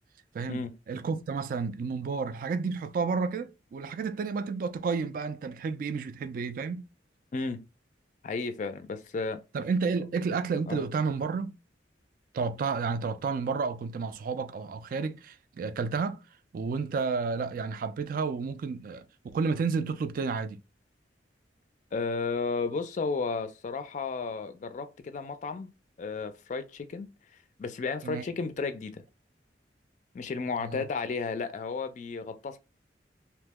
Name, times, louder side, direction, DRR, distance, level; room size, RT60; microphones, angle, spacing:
voice 1, 0.3-6.8 9.5-11.6 12.3-16.2 16.5-20.6 28.0-28.3 30.6-30.9, right 5 dB, 50° right, 0.3 m, -31 dB
voice 2, 7.3-7.6 8.2-9.4 10.7-10.8 21.9-25.7 26.0-27.1 27.6-29.0 30.1-32.6, left 4 dB, 45° left, 0.3 m, -33 dB
2.9 x 2.0 x 3.4 m
head